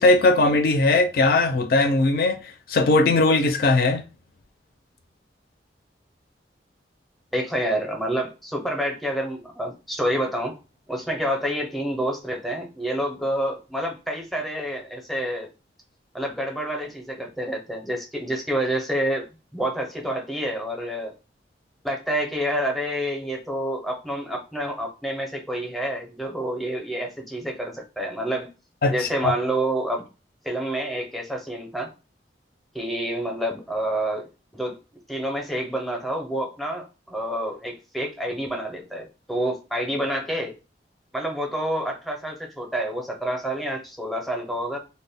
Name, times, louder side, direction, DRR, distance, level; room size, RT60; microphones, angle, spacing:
voice 1, 0.0-4.0 28.8-29.3, left 2 dB, 55° left, 0.4 m, -19 dB
voice 2, 7.3-10.6 10.9-15.5 16.1-19.3 19.5-21.1 21.8-28.5 28.9-30.0 30.4-31.9 32.7-34.3 34.5-34.8 35.1-40.5 41.1-44.8, right 1 dB, ahead, 0.5 m, -28 dB
2.1 x 2.0 x 3.3 m
head